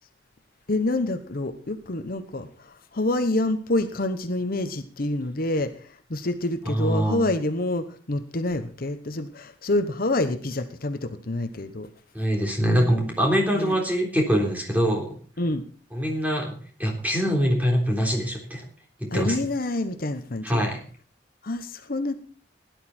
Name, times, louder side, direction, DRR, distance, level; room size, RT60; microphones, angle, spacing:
voice 1, 0.7-11.9 13.5-13.7 15.4-15.6 19.1-20.7 21.4-22.1, left 2 dB, 55° left, 9 dB, 1.0 m, -27 dB
voice 2, 6.7-7.2 12.1-15.1 15.9-18.6 19.0-19.4 20.4-20.8, equal, 10° right, 1 dB, 3.7 m, -24 dB
17.0 x 11.0 x 4.3 m, 0.41 s
head